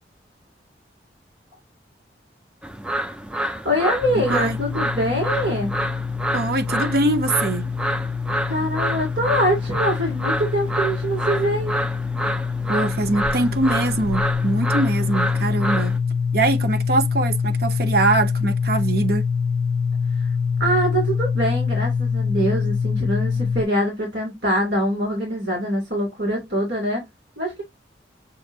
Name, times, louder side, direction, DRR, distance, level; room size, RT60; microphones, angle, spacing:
sound 1, 2.6-16.0, right 1 dB, 5° right, 0.3 m, -28 dB
voice 1, 3.3-5.7 8.5-11.8 20.2-20.3 20.6-27.0 27.4-27.6, equal, 80° right, 2.7 m, -24 dB
sound 2, 4.0-23.6, left 5 dB, 70° left, 0.4 m, -25 dB
voice 2, 6.3-7.7 12.7-16.0 16.3-19.2, right 2 dB, 55° right, 0.7 m, -22 dB
7.0 x 2.6 x 2.7 m
head